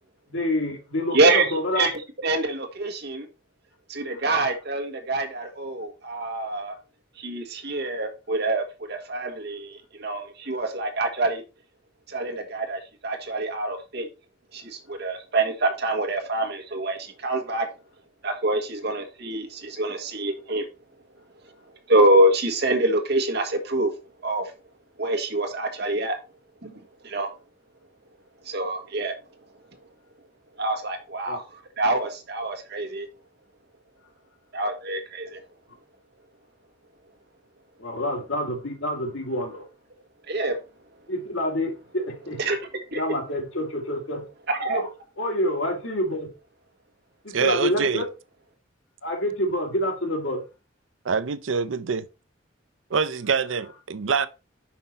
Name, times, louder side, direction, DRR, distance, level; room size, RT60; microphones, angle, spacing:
voice 1, 0.3-1.9 31.3-31.4 37.8-39.6 41.1-42.4 42.9-44.2 44.7-44.9 45.2-46.3 47.2-48.1 49.0-50.4, left 1 dB, 90° left, 2.3 m, -27 dB
voice 2, 1.1-3.3 3.9-6.7 7.2-11.4 12.1-14.1 14.5-17.7 18.2-20.7 21.9-23.9 24.2-24.5 25.0-26.2 26.6-27.3 28.4-29.2 30.6-33.1 34.5-35.4 40.3-40.6 42.4-42.6 42.9-43.0 44.5-44.8, right 2 dB, 60° right, 1.5 m, -26 dB
voice 3, 47.3-48.0 51.0-52.1 52.9-54.3, right 5 dB, 80° right, 0.6 m, -25 dB
5.8 x 5.5 x 4.2 m
head